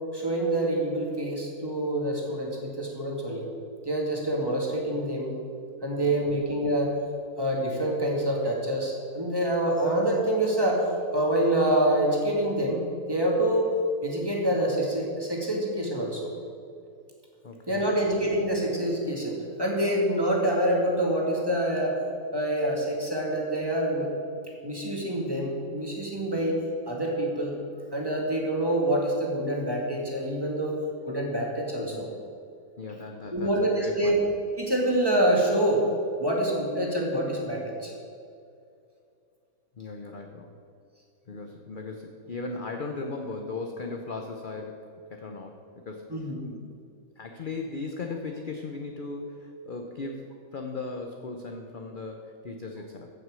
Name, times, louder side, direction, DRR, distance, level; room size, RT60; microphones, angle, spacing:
voice 1, 0.1-3.5 3.8-5.3 5.8-6.9 7.4-13.7 14.0-16.3 17.7-22.0 22.3-24.1 24.6-26.6 26.9-27.5 27.9-30.8 31.1-32.1 33.3-34.2 34.6-35.8 36.2-37.9 46.1-46.4, right 1 dB, 15° right, -2 dB, 2.2 m, -26 dB
voice 2, 5.9-6.4 17.4-18.1 31.8-32.1 32.8-34.3 39.8-40.5 41.3-46.1 46.4-46.8 47.2-53.1, left 3 dB, 45° left, 3 dB, 0.8 m, -37 dB
15.0 x 6.3 x 6.2 m, 2.4 s
omnidirectional pair, 1.5 m